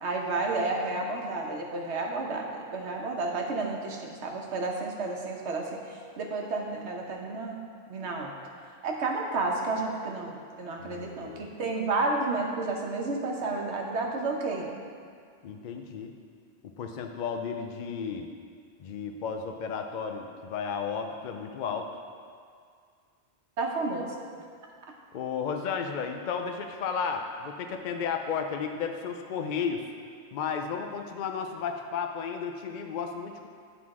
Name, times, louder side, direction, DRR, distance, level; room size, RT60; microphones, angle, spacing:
voice 1, 0.0-7.6 7.9-8.3 8.8-14.7 23.6-24.1, right 3 dB, 85° right, 1 dB, 1.2 m, -31 dB
voice 2, 10.8-11.4 15.4-16.1 16.8-18.3 18.8-21.9 25.1-29.9 30.3-33.5, left 6 dB, 55° left, 4 dB, 0.6 m, -33 dB
9.3 x 3.9 x 4.7 m, 2.1 s
omnidirectional pair, 1.1 m